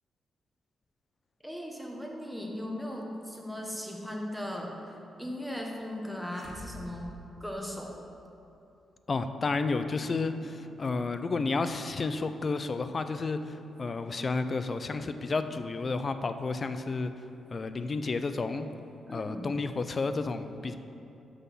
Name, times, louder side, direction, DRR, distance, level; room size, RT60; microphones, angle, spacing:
voice 1, 1.4-7.1 7.4-7.9 19.1-19.5, left 1 dB, ahead, 0 dB, 1.2 m, -38 dB
sound 1, 6.2-8.2, equal, 45° right, 1.3 m, -48 dB
voice 2, 9.1-17.1 17.5-18.7 19.1-20.8, left 3 dB, 45° left, 10 dB, 0.4 m, -31 dB
6.3 x 5.4 x 5.6 m, 2.8 s
supercardioid pair, 60°, 0 cm